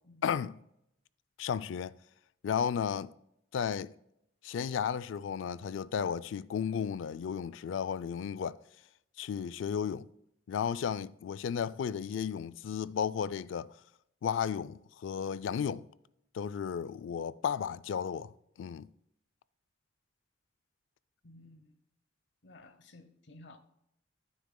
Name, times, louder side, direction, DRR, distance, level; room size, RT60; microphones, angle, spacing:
voice 1, 0.2-0.5 1.4-2.0 2.4-3.1 3.5-3.9 4.4-8.6 9.2-10.1 10.5-13.7 14.2-15.9 16.3-18.3 18.6-18.9, left 7 dB, 85° left, 0.3 m, -34 dB
voice 2, 21.2-21.8 22.4-23.6, left 2 dB, 65° left, 0.9 m, -55 dB
10.5 x 9.5 x 2.2 m
head